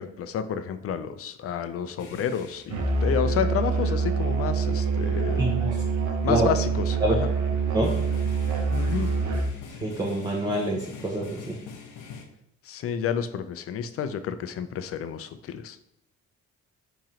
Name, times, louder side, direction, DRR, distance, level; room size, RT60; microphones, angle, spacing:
voice 1, 0.0-5.5 6.2-7.3 8.7-9.1 12.6-15.8, left 8 dB, 50° left, 11 dB, 0.4 m, -30 dB
sound 1, 2.0-2.8 4.2-4.3 4.7-4.8 5.3-5.6 7.2-12.2, left 6 dB, 85° left, 0.6 m, -43 dB
Musical instrument, 2.7-9.6, right 4 dB, 70° right, 0.7 m, -25 dB
voice 2, 5.4-5.8 6.3-6.5 7.0-7.1 7.7-7.9 9.8-11.6, right 1 dB, 15° right, -1 dB, 0.5 m, -26 dB
3.0 x 2.9 x 3.7 m, 0.77 s
cardioid pair, 90°, 30 cm